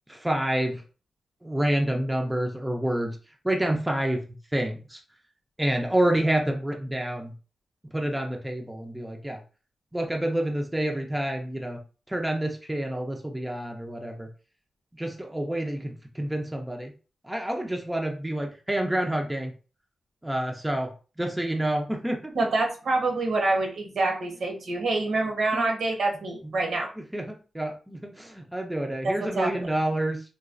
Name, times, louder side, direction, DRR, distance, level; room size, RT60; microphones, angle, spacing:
voice 1, 0.1-0.8 1.4-3.2 3.4-4.2 4.5-5.0 5.6-7.3 7.9-9.4 9.9-11.8 12.1-14.3 14.9-16.9 17.2-19.5 20.2-20.9 21.2-22.3 25.5-25.6 26.4-26.5 27.0-30.2, right 1 dB, 10° right, 2 dB, 0.4 m, -28 dB
voice 2, 22.3-26.9 29.0-29.7, right 2 dB, 70° right, 1 dB, 0.9 m, -26 dB
3.9 x 2.2 x 2.5 m, 0.35 s
wide cardioid pair, 130°, 0 cm